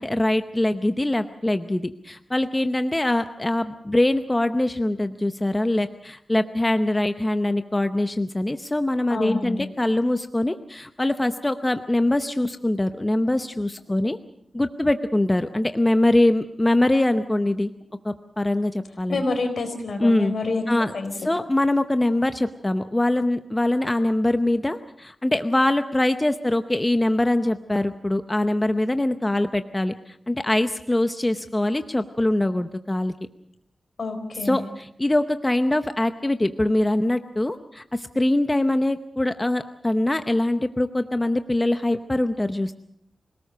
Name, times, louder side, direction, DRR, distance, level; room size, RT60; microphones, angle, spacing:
voice 1, 0.0-14.2 14.5-17.7 18.0-19.2 20.0-20.3 20.7-20.9 21.2-33.1 34.4-42.7, left 1 dB, 15° left, 9 dB, 0.8 m, -23 dB
voice 2, 9.1-9.7 19.1-20.6 20.9-21.1 34.0-34.7, left 3 dB, 65° left, 6 dB, 4.3 m, -28 dB
26.0 x 18.5 x 6.6 m, 0.69 s
wide cardioid pair, 145°, 0 cm